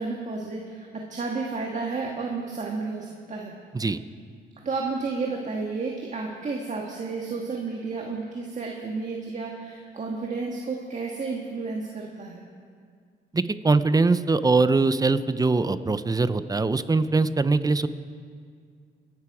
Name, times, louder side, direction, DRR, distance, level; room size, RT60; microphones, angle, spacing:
voice 1, 0.0-3.5 4.6-12.4, right 4 dB, 35° right, -1 dB, 1.7 m, -32 dB
voice 2, 13.3-17.9, right 3 dB, 20° right, 13 dB, 0.6 m, -22 dB
23.5 x 11.0 x 4.9 m, 2.1 s
cardioid pair, 90°, 20 cm